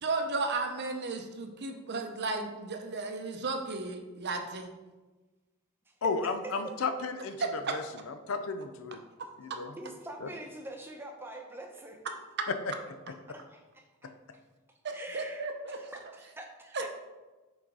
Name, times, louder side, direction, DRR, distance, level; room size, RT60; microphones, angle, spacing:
voice 1, 0.0-4.7 7.4-7.5 14.8-15.8 16.7-16.9, right 3 dB, 55° right, 5 dB, 0.7 m, -34 dB
voice 2, 6.0-9.0 9.4-9.8 10.2-10.3 12.6-12.7, left 4 dB, 75° left, 9 dB, 0.5 m, -34 dB
voice 3, 9.8-12.0 13.3-14.1 14.9-16.9, right 1 dB, 10° right, 2 dB, 0.8 m, -45 dB
6.1 x 4.0 x 4.7 m, 1.2 s
head